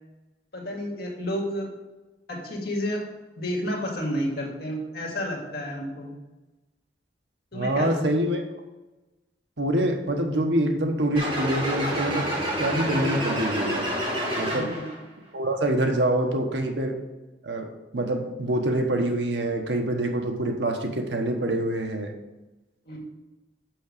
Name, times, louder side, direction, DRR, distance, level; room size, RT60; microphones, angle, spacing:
voice 1, 0.5-1.7 2.3-3.0 3.4-6.2 7.5-7.9 14.5-14.9 22.9-23.0, equal, 60° left, 0 dB, 2.1 m, -30 dB
voice 2, 7.5-8.4 9.6-12.3 12.6-13.9 14.4-14.7 15.3-17.0 17.4-22.1, right 1 dB, 70° right, 4 dB, 1.2 m, -25 dB
sound 1, 11.1-14.9, equal, 30° right, 2.8 m, -28 dB
6.2 x 6.0 x 6.6 m, 1.1 s
head